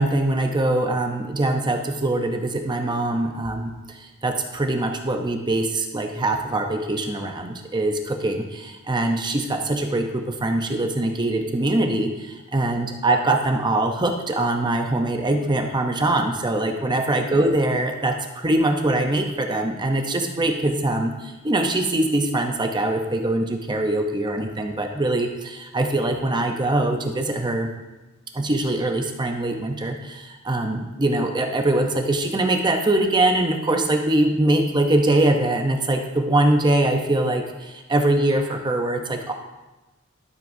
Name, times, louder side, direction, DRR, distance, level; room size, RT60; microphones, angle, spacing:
voice 1, 0.0-27.7 28.3-39.3, right 2 dB, 20° right, 4 dB, 0.7 m, -23 dB
12.5 x 7.7 x 2.6 m, 1.1 s
head